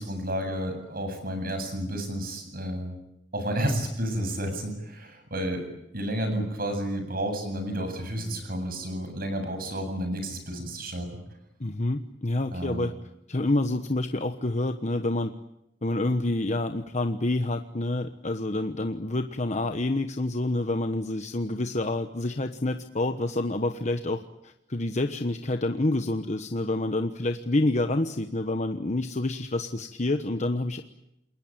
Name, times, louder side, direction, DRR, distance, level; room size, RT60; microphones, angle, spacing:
voice 1, 0.0-2.9 3.3-5.7 5.9-11.1 12.5-12.9, equal, 50° right, 7 dB, 7.9 m, -31 dB
sound 1, 8.0-9.8, left 1 dB, 25° right, 1.9 m, -48 dB
voice 2, 11.6-12.9 13.3-15.3 15.8-30.8, left 2 dB, 40° left, 7 dB, 1.2 m, -28 dB
29.0 x 21.5 x 8.9 m, 0.85 s
head